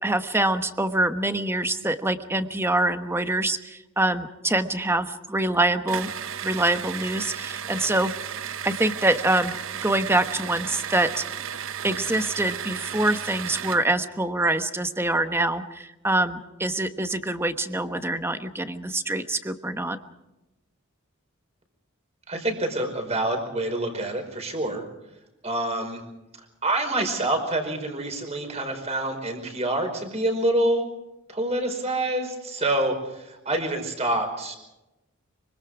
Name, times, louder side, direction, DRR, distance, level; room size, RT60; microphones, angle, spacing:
voice 1, 0.0-6.1 6.4-8.1 8.6-9.6 9.8-11.2 11.8-20.0, right 2 dB, 10° right, 9 dB, 1.2 m, -25 dB
sound 1, 5.9-13.9, right 8 dB, 70° right, 0.7 m, -34 dB
voice 2, 22.3-24.8 25.4-26.0 26.6-30.8 31.3-34.6, right 1 dB, 30° right, 5 dB, 5.1 m, -26 dB
25.5 x 24.5 x 4.9 m, 0.96 s
head